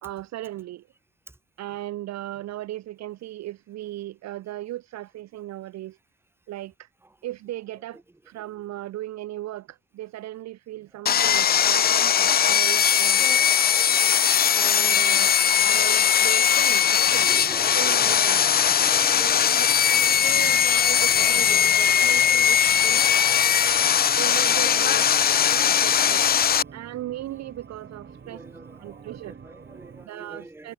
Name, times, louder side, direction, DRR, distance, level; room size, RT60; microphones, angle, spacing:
voice 1, 0.0-0.8 1.6-6.0 6.5-6.9 7.2-8.0 8.3-13.3 14.5-15.4 15.6-17.3 17.7-18.6 19.1-19.7 20.0-23.0 24.2-26.3 26.7-28.4 28.8-29.3 30.0-30.7, right 14 dB, 60° right, 0.5 m, -37 dB
voice 2, 10.9-11.5 13.2-13.5 17.2-19.5 21.1-22.7 28.2-30.7, right 2 dB, 10° right, 1.0 m, -45 dB
Sawing, 11.1-26.6, left 8 dB, 30° left, 0.4 m, -20 dB
sound 1, 17.0-30.1, right 6 dB, 35° right, 2.2 m, -46 dB
cardioid pair, 90°, 30 cm